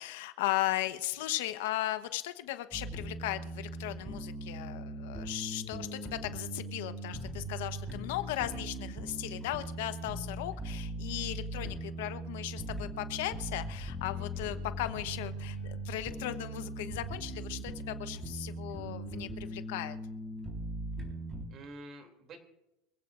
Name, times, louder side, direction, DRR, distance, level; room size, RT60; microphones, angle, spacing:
voice 1, 0.0-20.0, left 15 dB, 80° left, 10 dB, 1.1 m, -37 dB
sound 1, 2.7-21.4, right 1 dB, 15° right, 4.2 m, -40 dB
voice 2, 14.1-14.6 21.5-22.4, right 2 dB, 35° right, 5 dB, 2.9 m, -49 dB
26.0 x 16.0 x 2.6 m, 0.91 s
supercardioid pair, 155°, 0 cm